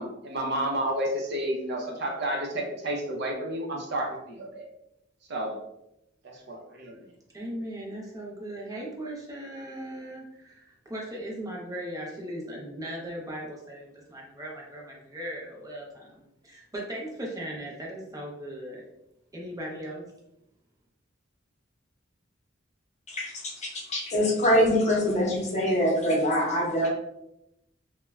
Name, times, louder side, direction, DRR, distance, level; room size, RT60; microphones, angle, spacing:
voice 1, 0.0-4.6 5.3-5.6 6.2-7.0, right 1 dB, 60° right, 0 dB, 0.6 m, -31 dB
voice 2, 7.3-18.8 19.3-20.0, right 1 dB, 20° right, -2 dB, 0.6 m, -38 dB
voice 3, 23.1-26.9, equal, 35° left, -3 dB, 0.8 m, -24 dB
3.1 x 2.1 x 2.3 m, 0.83 s
head